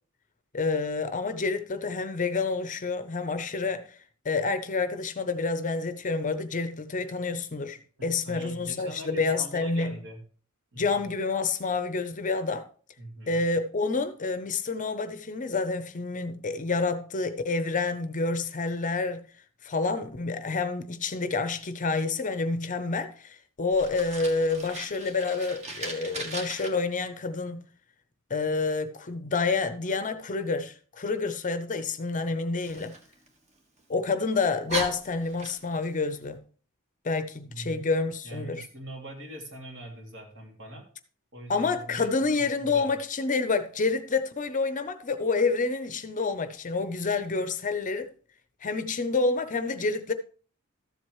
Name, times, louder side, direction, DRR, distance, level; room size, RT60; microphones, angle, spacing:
voice 1, 0.5-3.9 4.2-10.0 10.8-12.6 13.3-19.3 19.6-27.7 28.3-32.9 33.9-36.4 37.0-38.7 41.5-48.1 48.6-50.1, left 4 dB, 35° left, 0.7 m, -28 dB
voice 2, 8.0-10.2 10.7-11.1 13.0-13.4 37.5-37.8 38.2-40.8 41.3-42.1 42.4-42.9, right 1 dB, 60° right, 2.8 m, -42 dB
Fire, 23.7-26.7 32.6-33.8 34.3-34.4 34.7-35.9, right 2 dB, 30° right, 1.6 m, -37 dB
13.5 x 7.7 x 3.1 m
head